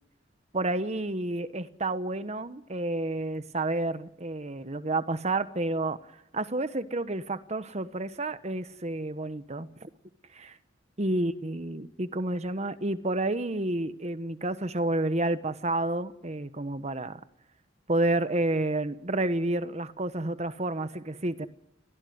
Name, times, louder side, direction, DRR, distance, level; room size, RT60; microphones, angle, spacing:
voice 1, 0.5-6.0 6.3-9.9 10.3-10.6 11.0-17.2 17.9-21.5, right 2 dB, 35° right, 1.2 m, -30 dB
29.5 x 17.5 x 9.5 m
head